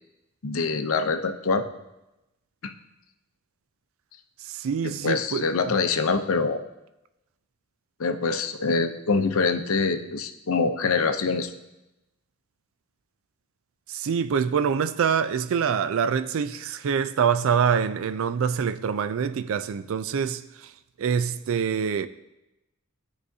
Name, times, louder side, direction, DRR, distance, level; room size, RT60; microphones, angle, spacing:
voice 1, 0.4-1.6 2.6-2.7 5.0-6.6 8.0-11.5, left 4 dB, 70° left, 0.6 m, -24 dB
voice 2, 4.4-5.7 13.9-20.7 21.0-22.1, right 7 dB, 65° right, 0.4 m, -25 dB
13.5 x 4.8 x 2.7 m
head